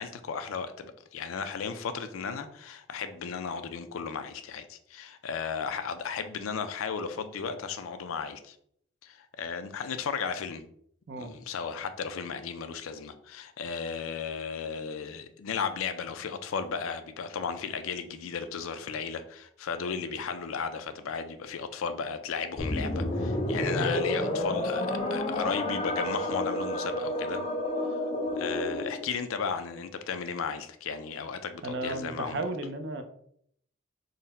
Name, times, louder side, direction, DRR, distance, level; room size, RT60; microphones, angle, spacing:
voice 1, 0.0-8.6 9.0-10.6 11.2-27.4 28.4-32.4, left 6 dB, 90° left, 9 dB, 0.4 m, -35 dB
sound 1, 22.6-29.1, left 1 dB, 30° left, 0.5 m, -30 dB
voice 2, 23.7-24.1 31.6-33.0, right 2 dB, 55° right, 8 dB, 0.4 m, -35 dB
3.9 x 2.1 x 4.0 m, 0.67 s
head